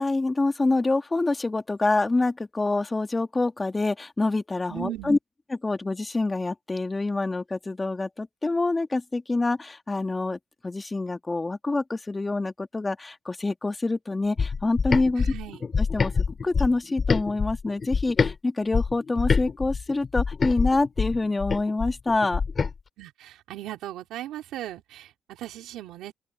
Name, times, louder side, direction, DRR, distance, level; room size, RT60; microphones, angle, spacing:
voice 1, 0.0-5.2 5.6-15.2 15.8-16.1 16.4-22.4, left 2 dB, 20° left, 2.0 m, -26 dB
voice 2, 4.7-5.2 15.2-15.6 23.0-26.1, right 14 dB, 90° right, 3.7 m, -37 dB
sound 1, 14.4-18.3 18.7-22.7, left 5 dB, 40° left, 5.7 m, -26 dB
open air
cardioid pair, 90°, 0 cm